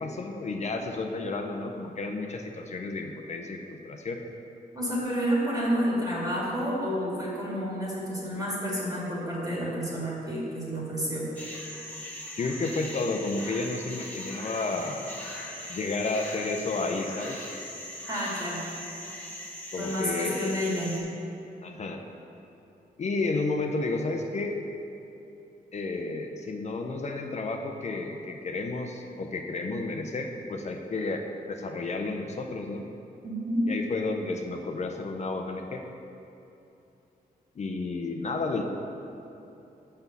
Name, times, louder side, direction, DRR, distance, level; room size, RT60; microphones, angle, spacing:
voice 1, 0.0-4.2 12.4-15.1 15.7-17.4 19.7-20.5 21.6-22.0 23.0-24.6 25.7-31.2 31.5-32.9 33.7-35.8 37.6-38.6, left 3 dB, 45° left, 3 dB, 0.6 m, -31 dB
voice 2, 4.7-11.3 18.1-18.6 19.8-21.0 33.2-33.7, equal, 25° right, -6 dB, 2.0 m, -29 dB
sound 1, 11.4-21.0, left 1 dB, 10° left, 1.5 m, -40 dB
6.1 x 5.5 x 6.9 m, 2.9 s
wide cardioid pair, 110°, 16 cm